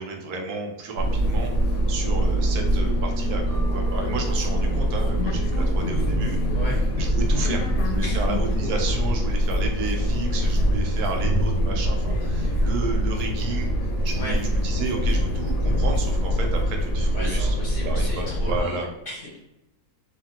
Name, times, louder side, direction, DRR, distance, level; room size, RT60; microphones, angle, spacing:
voice 1, 0.0-6.4 7.0-13.7 14.0-17.5 17.8-18.9, right 3 dB, 75° right, 2 dB, 1.1 m, -32 dB
sound 1, 1.0-18.6, equal, 70° left, 1.0 m, -23 dB
voice 2, 17.1-19.4, left 1 dB, 45° left, -6 dB, 0.8 m, -35 dB
2.7 x 2.4 x 2.8 m, 0.91 s
omnidirectional pair, 1.7 m